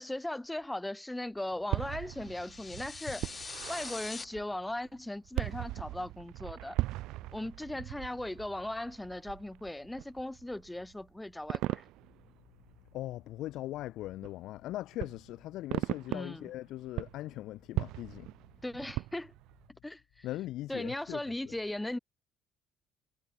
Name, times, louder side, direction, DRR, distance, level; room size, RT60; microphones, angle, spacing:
voice 1, 0.0-3.2 3.7-6.8 7.3-11.8 16.1-16.5 18.6-19.3 19.8-20.2 20.7-22.0, left 1 dB, 10° left, 1.7 m, -38 dB
sound 1, 1.5-13.5 14.2-14.3 14.9-16.6 16.9-19.7, right 17 dB, 75° right, 2.1 m, -39 dB
sound 2, 2.1-4.2, left 4 dB, 30° left, 2.3 m, -43 dB
voice 2, 12.9-18.3 20.2-21.5, left 15 dB, 70° left, 3.4 m, -40 dB
supercardioid pair, 70°, 0 cm